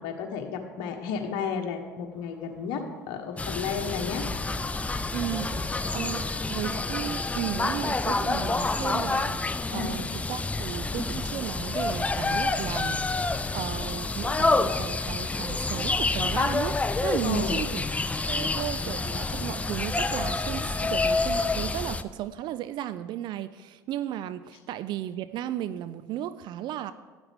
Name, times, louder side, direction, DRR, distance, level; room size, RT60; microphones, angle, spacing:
voice 1, 0.0-4.3 9.7-9.9 17.2-17.8, left 6 dB, 60° left, 4 dB, 1.3 m, -32 dB
sound 1, 2.1-18.5, equal, 15° right, 2.2 m, -53 dB
sound 2, 3.4-22.0, left 3 dB, 15° left, 0.5 m, -28 dB
voice 2, 5.1-5.5 5.9-17.9 18.3-26.9, right 12 dB, 55° right, 14 dB, 0.4 m, -35 dB
12.5 x 9.6 x 3.6 m, 1.4 s
hypercardioid pair, 70°, 9 cm